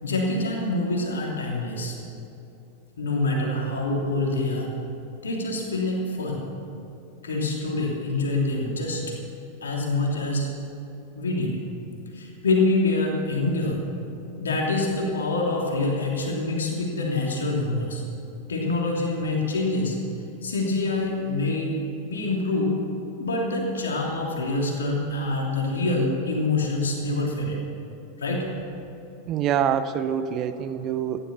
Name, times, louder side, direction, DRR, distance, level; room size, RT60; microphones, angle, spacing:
voice 1, 0.0-2.0 3.0-4.7 5.2-6.4 7.2-9.0 9.6-10.5 11.1-11.6 12.1-13.8 14.4-18.0 18.5-20.0 20.4-21.8 22.0-22.7 23.2-27.6 28.2-28.5, left 2 dB, 70° left, -1 dB, 3.1 m, -25 dB
voice 2, 29.3-31.2, right 9 dB, 35° right, 11 dB, 0.7 m, -25 dB
15.0 x 11.5 x 6.8 m, 2.8 s
figure-of-eight pair, 90°, 0 cm